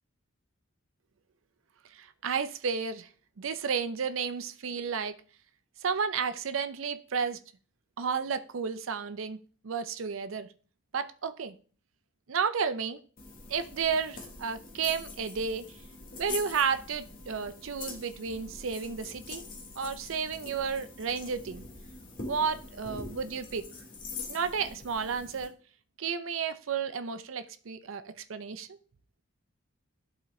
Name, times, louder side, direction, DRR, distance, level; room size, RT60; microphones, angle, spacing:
voice 1, 1.9-3.1 3.4-5.1 5.8-7.4 8.0-9.4 9.6-10.5 10.9-11.5 12.3-13.0 13.5-15.6 16.2-19.4 19.8-21.6 22.3-23.6 24.3-25.6 26.0-28.8, right 6 dB, 85° right, 11 dB, 0.5 m, -32 dB
sound 1, 13.2-25.5, left 3 dB, 45° left, 1.3 m, -44 dB
11.0 x 4.0 x 3.1 m, 0.41 s
head